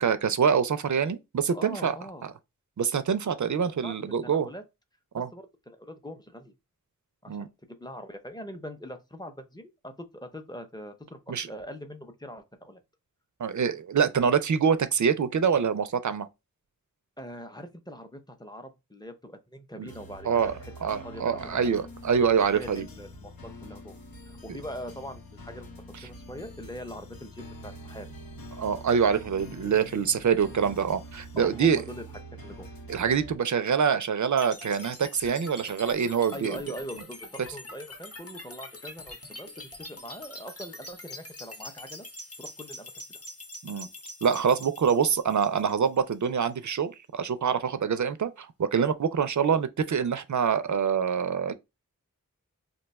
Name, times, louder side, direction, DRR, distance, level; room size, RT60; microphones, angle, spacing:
voice 1, 0.0-1.9 2.8-4.5 5.1-5.3 7.3-7.5 11.3-11.5 13.4-16.3 19.8-19.9 20.3-20.5 20.8-22.9 28.6-31.8 32.9-36.6 43.6-43.9 44.2-51.5, right 7 dB, 60° right, 0.4 m, -25 dB
voice 2, 1.5-2.3 3.8-4.0 4.2-4.6 5.2-6.5 7.2-7.5 7.8-12.8 17.2-21.7 22.5-24.0 24.3-28.1 31.4-32.1 32.3-32.7 36.3-42.1 42.4-43.2, equal, 10° left, 0.6 m, -42 dB
sound 1, 19.8-33.4, equal, 90° left, 0.9 m, -45 dB
sound 2, 34.4-46.4, left 1 dB, 45° left, 0.8 m, -44 dB
2.6 x 2.3 x 4.0 m
wide cardioid pair, 50°, 34 cm